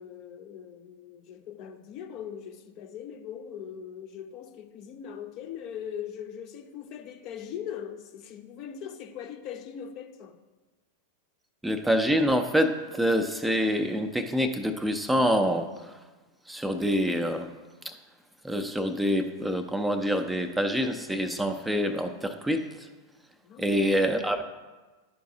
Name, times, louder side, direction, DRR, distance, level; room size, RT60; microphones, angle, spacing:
voice 1, 0.0-10.4 23.4-24.2, left 8 dB, 40° left, 0.6 m, -40 dB
voice 2, 11.6-15.9 16.5-17.5 17.8-18.0 18.4-22.9 23.6-24.4, equal, 5° right, 0.5 m, -26 dB
12.0 x 4.6 x 2.7 m
figure-of-eight pair, 90°, 0 cm